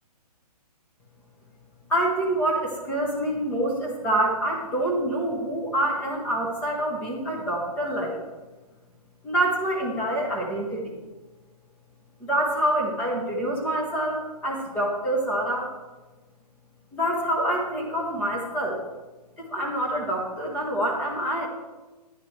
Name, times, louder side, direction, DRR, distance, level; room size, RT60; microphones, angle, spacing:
voice 1, 1.9-8.2 9.2-10.9 12.2-15.7 16.9-18.8 19.4-21.5, right 1 dB, 5° left, -3 dB, 1.1 m, -26 dB
11.0 x 10.5 x 3.3 m, 1.2 s
hypercardioid pair, 170°, 21 cm